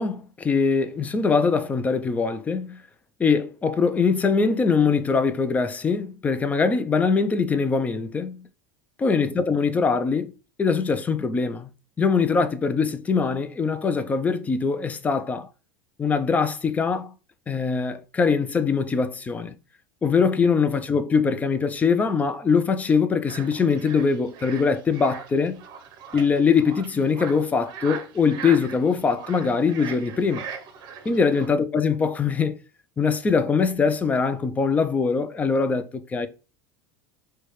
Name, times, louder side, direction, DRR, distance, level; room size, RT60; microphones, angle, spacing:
voice 1, 0.0-2.8 3.2-8.5 9.0-10.3 10.6-11.7 12.0-15.5 16.0-17.1 17.5-19.5 20.0-25.5 26.1-30.5 31.1-32.5 33.0-36.3, left 5 dB, 15° left, 0.3 m, -22 dB
Biophonic invasion Marsh frog Rhine river Switzerland, 23.3-31.5, right 7 dB, 45° right, 0.7 m, -40 dB
4.6 x 2.2 x 3.0 m
supercardioid pair, 130°, 10 cm